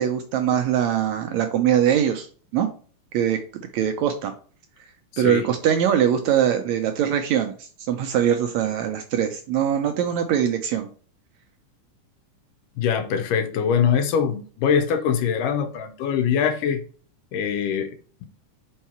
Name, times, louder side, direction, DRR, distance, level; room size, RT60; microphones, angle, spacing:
voice 1, 0.0-2.3 2.5-2.7 3.1-3.4 3.7-4.3 5.2-7.5 7.9-10.9, right 9 dB, 75° right, 1.7 m, -22 dB
voice 2, 5.1-5.5 12.8-16.8 17.3-18.2, left 7 dB, 80° left, 2.6 m, -23 dB
5.6 x 4.6 x 4.3 m
omnidirectional pair, 3.7 m